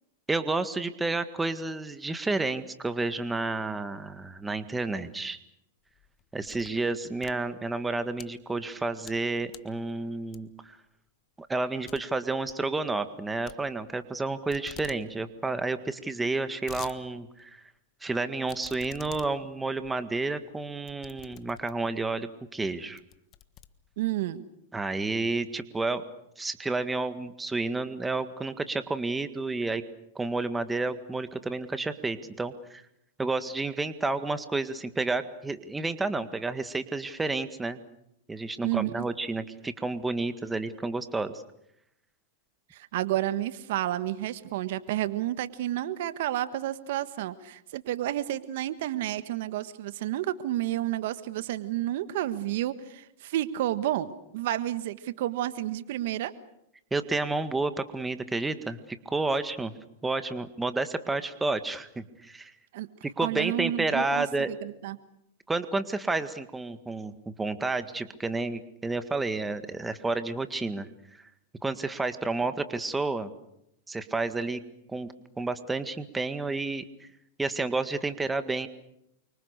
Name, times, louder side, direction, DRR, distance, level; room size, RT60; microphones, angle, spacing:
voice 1, 0.3-5.4 6.3-10.8 11.4-17.6 18.0-23.0 24.7-26.0 26.4-29.8 30.2-32.8 33.2-37.8 38.3-41.3 56.9-59.7 60.0-62.5 63.0-64.5 65.5-70.9 71.6-73.3 73.9-74.6 74.9-77.1 77.4-78.7, right 3 dB, 10° right, 10 dB, 1.8 m, -30 dB
sound 1, 5.9-6.8 7.1-8.3 8.8-9.2 9.5-9.8 10.3-10.7 11.1-11.2 11.5-11.6 11.9-12.0 12.3-12.6 13.5-14.2 14.5-15.0 15.4-15.5 15.6-15.7 16.3-17.0 17.4-17.5 18.5-22.0 22.5-22.7 23.0-24.2, left 12 dB, 35° left, 1.5 m, -48 dB
voice 2, 24.0-24.4 38.6-39.0 42.7-56.3 62.7-62.9 63.2-65.0, right 13 dB, 65° right, 13 dB, 1.5 m, -31 dB
29.0 x 25.0 x 6.7 m, 0.78 s
hypercardioid pair, 120°, 0 cm